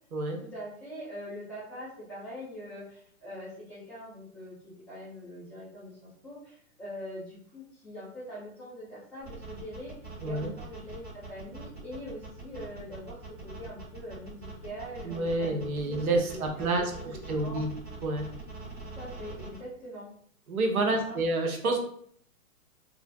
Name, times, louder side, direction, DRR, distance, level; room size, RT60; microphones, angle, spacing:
voice 1, 0.4-17.7 18.9-20.1 20.9-21.2 21.6-21.8, equal, 5° left, -13 dB, 0.4 m, -43 dB
sound 1, 9.2-19.6, right 3 dB, 30° right, 1.4 m, -43 dB
voice 2, 15.0-16.9 17.3-17.7 18.0-18.3 20.5-21.8, right 2 dB, 80° right, 3 dB, 0.8 m, -28 dB
2.5 x 2.4 x 2.2 m, 0.62 s
hypercardioid pair, 130°, 43 cm